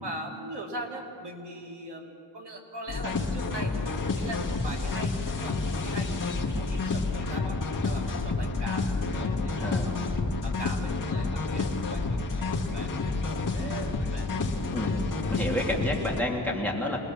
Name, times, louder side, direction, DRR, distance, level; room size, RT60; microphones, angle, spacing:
voice 1, 0.0-10.1 10.4-14.3, right 1 dB, 60° right, 0 dB, 2.7 m, -41 dB
sound 1, 2.9-16.2, left 3 dB, 45° left, 2.2 m, -29 dB
voice 2, 9.5-9.9 14.7-15.0 15.3-17.0, left 1 dB, 5° left, -3 dB, 3.1 m, -29 dB
26.5 x 20.5 x 7.2 m, 2.4 s
wide cardioid pair, 145°, 45 cm